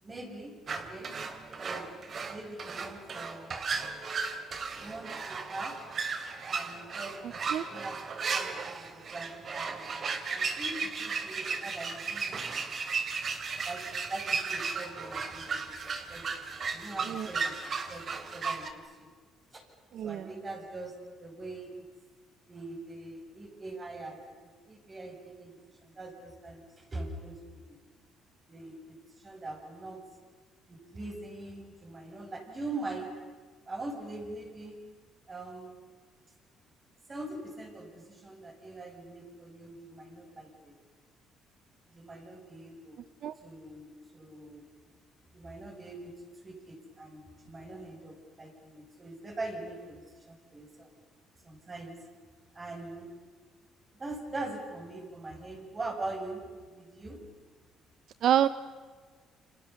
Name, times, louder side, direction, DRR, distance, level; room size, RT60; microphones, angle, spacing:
voice 1, 0.0-1.9 2.2-3.6 4.8-5.8 6.5-8.0 8.3-12.5 13.6-15.8 16.1-16.3 16.7-19.1 19.5-19.6 20.0-20.9 21.2-21.9 22.5-27.8 28.5-30.0 30.7-33.1 33.7-34.8 35.3-35.8 37.1-40.7 41.9-43.0 43.4-44.7 45.3-46.1 46.4-50.9 51.4-52.0 52.5-53.1 54.0-56.5 56.7-57.2, right 2 dB, 25° right, 2 dB, 7.5 m, -42 dB
sound 1, 0.7-18.7, right 5 dB, 45° right, 2.9 m, -35 dB
voice 2, 19.9-20.3 43.2-43.3 58.2-58.5, right 10 dB, 65° right, 14 dB, 0.8 m, -26 dB
29.0 x 27.0 x 7.1 m, 1.5 s
cardioid pair, 100°, 0 cm